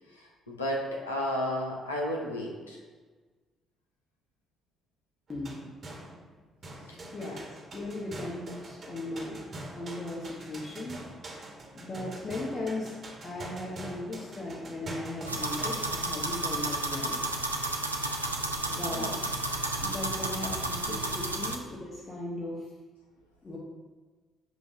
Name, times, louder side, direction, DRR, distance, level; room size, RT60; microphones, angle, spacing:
voice 1, 0.1-2.8 6.9-7.3 18.9-19.1, left 1 dB, 85° left, -1 dB, 0.7 m, -33 dB
voice 2, 5.3-5.6 7.1-7.4 7.7-11.0 11.7-17.2 18.6-19.3 19.8-22.7 23.4-23.6, left 2 dB, 30° left, -5 dB, 1.3 m, -37 dB
sound 1, 5.3-6.4 6.6-16.1, right 1 dB, 45° right, 1.4 m, -44 dB
sound 2, 15.3-21.6, right 2 dB, 90° right, 0.3 m, -32 dB
7.7 x 2.7 x 4.8 m, 1.4 s
figure-of-eight pair, 45°, 0 cm